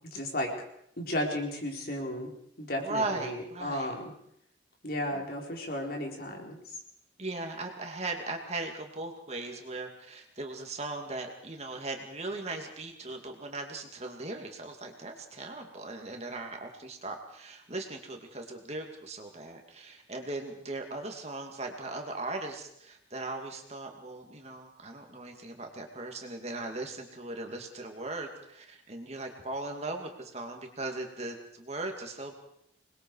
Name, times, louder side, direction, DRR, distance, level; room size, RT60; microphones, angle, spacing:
voice 1, 0.1-0.5 1.0-2.3 2.6-4.1 4.8-6.8, left 1 dB, 50° left, 0 dB, 4.4 m, -34 dB
voice 2, 2.8-3.9 5.1-5.2 7.2-32.3, right 2 dB, 35° right, 3 dB, 2.6 m, -38 dB
26.5 x 21.0 x 4.8 m, 0.72 s
head